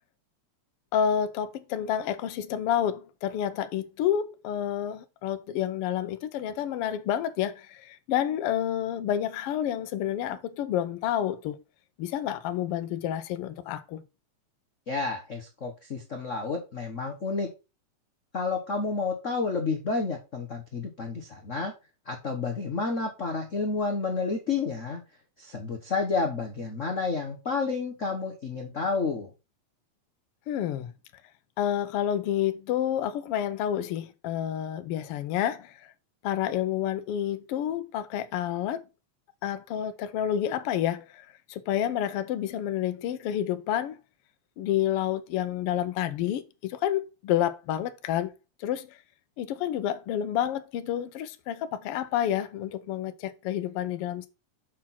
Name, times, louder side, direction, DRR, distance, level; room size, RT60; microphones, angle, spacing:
voice 1, 0.9-11.6 12.0-14.0 30.5-30.9 31.6-35.9 36.2-38.8 39.4-44.0 44.6-48.3 48.6-49.0 49.4-54.3, left 10 dB, 70° left, 1.5 m, -29 dB
voice 2, 14.9-17.5 18.3-21.7 22.1-25.0 25.4-29.3, left 4 dB, 85° left, 0.6 m, -30 dB
7.3 x 4.5 x 5.7 m
omnidirectional pair, 3.4 m